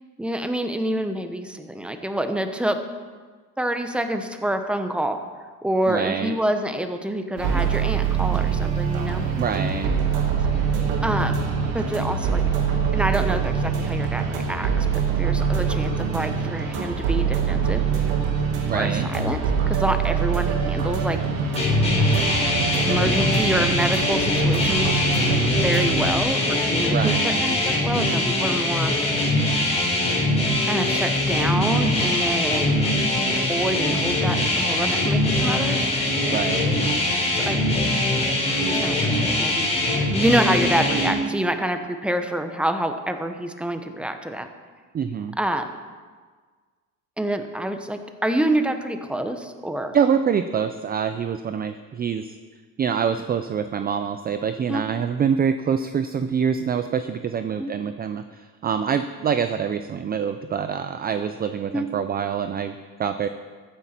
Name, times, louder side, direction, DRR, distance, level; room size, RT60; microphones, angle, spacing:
voice 1, 0.2-2.8 3.6-5.2 5.6-9.3 11.0-11.4 11.7-12.4 12.9-14.9 15.2-17.8 18.7-21.2 22.9-25.0 25.6-29.1 30.6-32.9 33.5-35.9 37.3-37.9 38.6-39.1 39.4-39.7 40.0-44.5 45.4-45.7 47.2-50.0 54.7-54.8 57.6-57.7 61.7-61.9, right 1 dB, 5° right, 7 dB, 1.0 m, -27 dB
voice 2, 5.9-6.3 9.4-9.9 18.6-19.1 26.9-27.6 36.3-36.8 44.9-45.3 49.9-52.4 52.8-63.3, right 7 dB, 25° right, 10 dB, 0.5 m, -25 dB
sound 1, 7.4-26.1, right 6 dB, 90° right, 2.0 m, -24 dB
sound 2, 21.6-41.1, left 1 dB, 20° left, 3.9 m, -22 dB
14.0 x 10.0 x 4.4 m, 1.5 s
cardioid pair, 110°, 35 cm